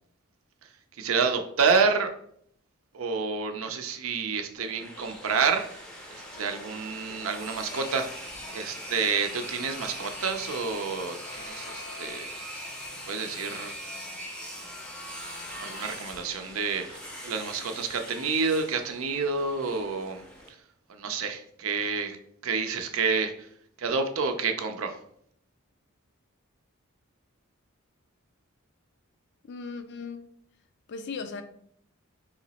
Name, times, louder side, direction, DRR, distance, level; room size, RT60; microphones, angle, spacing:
voice 1, 1.0-2.1 2.9-5.8 6.1-12.3 13.1-13.8 15.6-20.6 20.9-22.2 22.4-23.5 23.8-25.0, right 5 dB, 70° right, 0.5 m, -29 dB
sound 1, 4.6-20.5, equal, 5° left, 0.6 m, -41 dB
voice 2, 29.5-30.3 30.9-31.4, left 4 dB, 55° left, 0.4 m, -37 dB
3.2 x 3.0 x 4.0 m
head